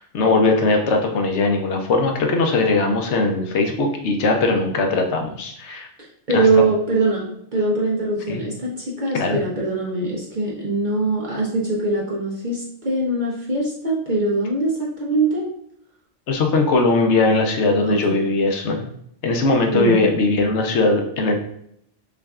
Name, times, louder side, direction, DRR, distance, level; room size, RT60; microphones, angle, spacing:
voice 1, 0.0-5.9 6.3-6.6 8.3-8.4 9.1-9.4 16.3-18.9 19.2-21.4, left 3 dB, 75° left, 3 dB, 0.9 m, -20 dB
voice 2, 6.3-7.2 7.5-15.4 17.9-18.1 19.7-20.1, right 2 dB, 45° right, -4 dB, 0.8 m, -22 dB
5.7 x 2.5 x 2.3 m, 0.71 s
omnidirectional pair, 1.2 m